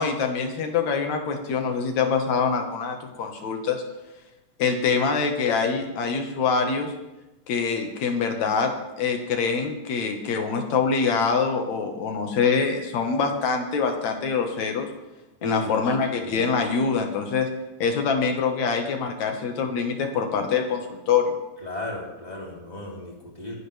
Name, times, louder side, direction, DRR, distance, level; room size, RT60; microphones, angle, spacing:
voice 1, 0.0-3.8 4.6-6.9 7.5-14.9 15.4-17.5 17.8-21.3, left 5 dB, 60° left, 4 dB, 2.7 m, -24 dB
voice 2, 15.4-15.8 16.2-16.5 21.6-23.5, left 2 dB, 10° left, -3 dB, 2.9 m, -34 dB
22.0 x 12.0 x 3.5 m, 1.0 s
omnidirectional pair, 3.8 m